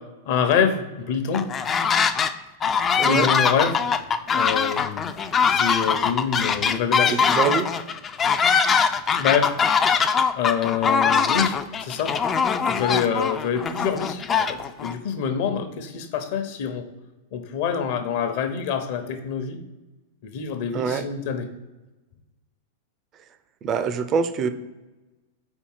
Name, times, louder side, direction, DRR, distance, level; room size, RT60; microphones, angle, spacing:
voice 1, 0.3-1.5 3.0-3.8 4.3-5.1 5.5-7.2 9.1-9.5 10.3-12.2 12.6-16.9 17.3-19.6 20.2-21.5, left 7 dB, 55° left, 6 dB, 0.9 m, -26 dB
sound 1, 1.3-2.3 2.6-14.9, left 6 dB, 25° left, 0.4 m, -22 dB
voice 2, 3.0-3.3 7.3-7.7 20.7-21.0 23.6-24.5, right 6 dB, 35° right, 11 dB, 0.5 m, -24 dB
4.5 x 4.3 x 5.5 m, 1.1 s
hypercardioid pair, 105°, 0 cm